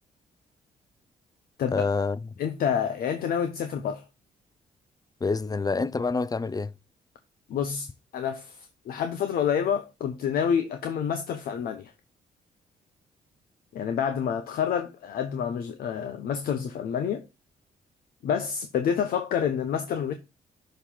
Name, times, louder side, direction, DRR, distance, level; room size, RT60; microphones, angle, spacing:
voice 1, 1.7-2.2 5.2-6.7, left 4 dB, 25° left, 0.5 m, -27 dB
voice 2, 2.4-4.0 7.5-7.9 8.1-11.9 13.7-17.3 18.2-20.1, left 8 dB, 70° left, 0.8 m, -28 dB
6.6 x 3.1 x 5.5 m
supercardioid pair, 60°, 16 cm